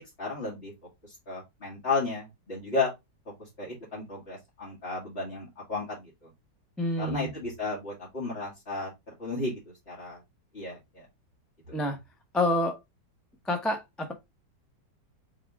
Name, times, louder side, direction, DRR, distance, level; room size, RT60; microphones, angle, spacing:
voice 1, 0.2-0.7 1.0-2.9 3.4-6.3 7.0-8.9 9.2-9.6 9.9-10.2 10.5-11.1 11.7-11.8, left 3 dB, 35° left, 2.2 m, -33 dB
voice 2, 6.8-7.3 11.7-12.0 12.3-12.8 13.5-14.1, left 1 dB, ahead, 0.3 m, -28 dB
4.1 x 3.7 x 3.4 m
omnidirectional pair, 1.9 m